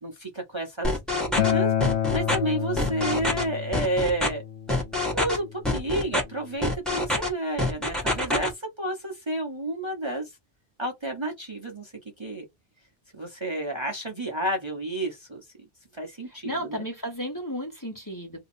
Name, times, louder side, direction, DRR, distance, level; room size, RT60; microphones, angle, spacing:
voice 1, 0.0-1.7 2.1-4.4 5.1-10.3 10.8-12.4 13.1-15.4 15.9-16.8, right 1 dB, 25° right, 1.0 m, -31 dB
sound 1, 0.8-1.5 1.8-2.4 2.8-3.4 3.7-4.3 4.7-5.4 5.7-6.2 6.6-7.3 7.6-8.5, left 1 dB, ahead, 1.3 m, -25 dB
Acoustic guitar, 1.4-6.6, left 10 dB, 90° left, 0.9 m, -29 dB
voice 2, 16.4-18.4, equal, 20° left, 1.2 m, -33 dB
2.9 x 2.4 x 4.1 m
omnidirectional pair, 1.1 m